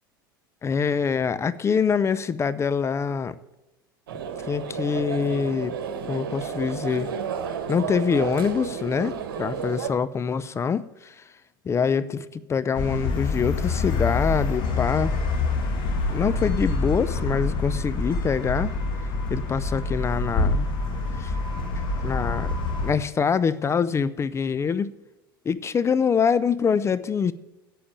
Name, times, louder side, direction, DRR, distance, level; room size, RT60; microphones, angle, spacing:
voice 1, 0.6-3.4 4.5-5.7 6.1-7.1 7.7-11.2 11.7-15.1 16.1-18.7 19.3-20.7 21.2-21.3 22.0-22.6 22.8-24.9 25.5-27.3, left 6 dB, 25° left, 15 dB, 0.5 m, -25 dB
sound 1, 4.1-9.9, right 7 dB, 75° right, 1.5 m, -32 dB
sound 2, 12.7-22.9, left 3 dB, 45° left, 2.7 m, -26 dB
8.7 x 8.6 x 8.6 m, 0.98 s
hypercardioid pair, 85°, 12 cm